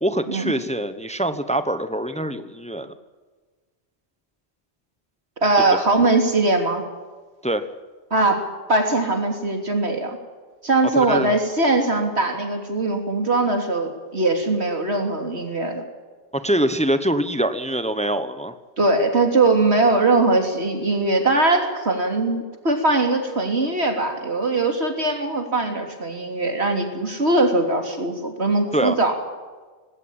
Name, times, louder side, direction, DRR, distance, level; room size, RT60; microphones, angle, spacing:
voice 1, 0.0-2.9 7.4-7.7 10.9-11.3 16.3-18.5 28.7-29.0, right 1 dB, 5° left, 11 dB, 1.0 m, -24 dB
voice 2, 5.4-6.8 8.1-10.2 10.6-15.8 18.8-29.1, right 2 dB, 90° right, 4 dB, 3.5 m, -21 dB
19.5 x 17.5 x 8.9 m, 1.4 s
omnidirectional pair, 1.1 m